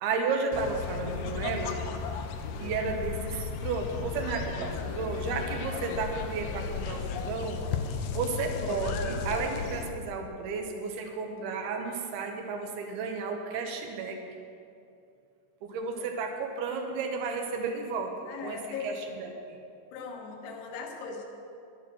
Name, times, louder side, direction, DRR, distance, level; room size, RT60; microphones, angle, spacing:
voice 1, 0.0-1.8 2.6-7.6 8.1-14.2 15.6-18.2 18.4-19.6, right 4 dB, 75° right, 4 dB, 2.6 m, -33 dB
sound 1, 0.5-9.9, left 6 dB, 90° left, 2.1 m, -35 dB
voice 2, 18.3-18.9 19.9-21.2, left 5 dB, 70° left, 2 dB, 3.1 m, -39 dB
11.5 x 11.0 x 6.1 m, 2.5 s
omnidirectional pair, 5.4 m